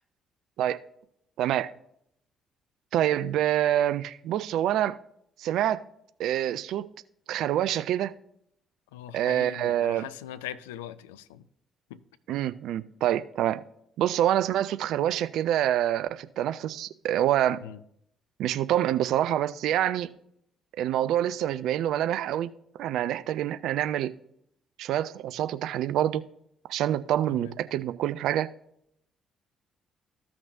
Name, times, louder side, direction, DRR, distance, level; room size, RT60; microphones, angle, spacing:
voice 1, 1.4-1.7 2.9-5.0 5.4-5.8 6.2-6.9 7.3-8.1 9.1-10.1 12.3-13.6 14.0-17.6 18.4-20.1 20.8-22.5 22.8-24.1 24.8-26.2 26.7-28.5, right 11 dB, 60° right, 0.4 m, -26 dB
voice 2, 8.9-11.5 11.9-12.0 17.6-17.8 27.3-27.6, left 11 dB, 75° left, 0.3 m, -41 dB
15.0 x 5.9 x 2.6 m
figure-of-eight pair, 45°, 0 cm